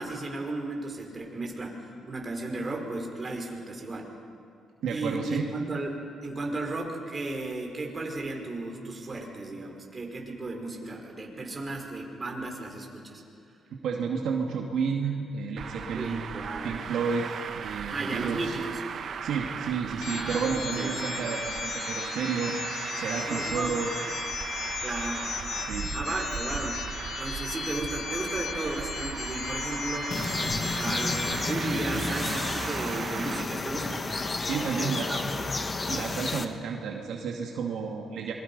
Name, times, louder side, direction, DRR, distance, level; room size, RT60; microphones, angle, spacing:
voice 1, 0.0-4.1 4.9-13.2 16.0-16.8 17.9-18.8 20.1-21.0 23.3-23.8 24.8-25.3 25.9-26.8 27.2-30.4 30.7-34.0 34.8-35.5, right 2 dB, 30° right, 1 dB, 4.6 m, -35 dB
voice 2, 4.8-5.5 13.7-16.2 16.6-17.3 17.5-18.5 19.2-22.5 22.9-23.9 25.7-25.9 34.4-35.1 35.9-38.3, right 6 dB, 75° right, 0 dB, 2.2 m, -31 dB
Traffic noise roadway noise, 15.6-33.4, right 7 dB, 60° right, 1.0 m, -37 dB
sound 1, 20.0-31.5, left 6 dB, 55° left, 1.3 m, -36 dB
sound 2, 30.1-36.5, left 3 dB, 30° left, 1.5 m, -31 dB
25.5 x 22.5 x 5.4 m, 2.5 s
cardioid pair, 90°, 0 cm